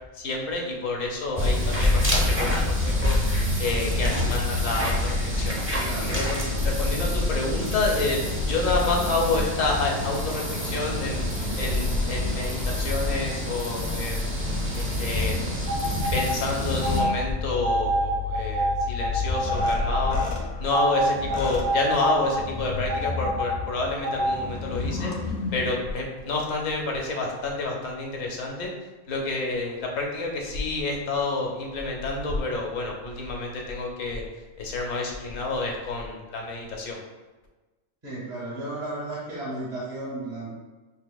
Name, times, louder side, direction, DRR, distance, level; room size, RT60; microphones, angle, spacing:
voice 1, 0.1-3.2 3.6-5.1 5.4-8.2 8.5-11.3 11.6-14.3 14.7-15.4 16.1-20.2 20.6-25.1 25.5-28.7 29.1-34.2 34.6-37.0, left 3 dB, 75° left, 0 dB, 1.1 m, -28 dB
sound 1, 1.4-17.0, left 1 dB, 20° right, 0.4 m, -26 dB
voice 2, 5.8-6.6 38.0-40.6, right 2 dB, 35° right, -7 dB, 1.0 m, -34 dB
sound 2, 9.8-13.6 14.2-25.7, left 4 dB, 40° left, 0.6 m, -34 dB
sound 3, 15.7-16.3 16.8-17.1 17.6-20.2 20.7-22.4 22.9-23.5 24.0-24.3, right 1 dB, 90° right, 1.5 m, -26 dB
5.7 x 2.8 x 2.2 m, 1.2 s
omnidirectional pair, 1.4 m